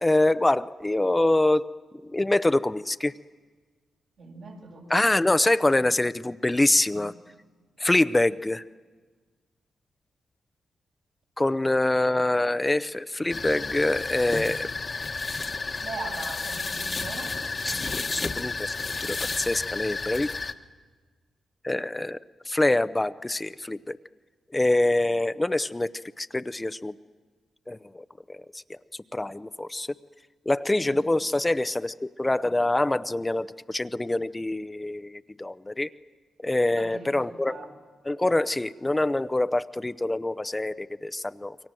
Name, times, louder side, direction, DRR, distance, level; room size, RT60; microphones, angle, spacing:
voice 1, 0.0-1.7 2.1-3.1 4.9-7.1 7.8-8.6 11.4-14.7 17.6-20.3 21.6-22.2 22.5-24.0 24.5-25.9 26.2-26.9 27.7-28.8 29.1-29.9 30.5-35.9 36.4-37.6 38.0-41.6, left 2 dB, 20° left, 12 dB, 0.7 m, -25 dB
voice 2, 4.2-5.0 6.8-7.1 11.6-11.7 15.8-17.3 17.7-18.4 30.7-31.4 36.8-37.7, right 3 dB, 75° right, -2 dB, 7.8 m, -42 dB
sound 1, 13.3-20.5, left 4 dB, 45° left, 1.4 m, -31 dB
28.5 x 23.5 x 7.7 m, 1.5 s
supercardioid pair, 55°, 0 cm